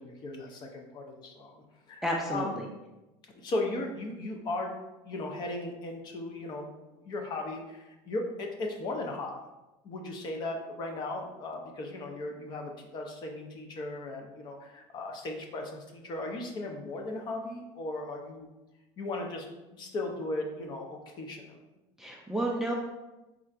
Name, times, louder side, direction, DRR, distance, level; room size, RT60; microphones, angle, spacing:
voice 1, 0.0-2.0 2.3-2.6 3.4-4.8 5.0-6.7 7.0-9.3 9.8-18.5 19.0-21.6, left 2 dB, 35° left, 2 dB, 0.6 m, -37 dB
voice 2, 2.0-2.7 22.0-22.7, right 1 dB, 5° right, -1 dB, 0.3 m, -31 dB
3.7 x 2.4 x 4.3 m, 1.0 s
cardioid pair, 155°, 12 cm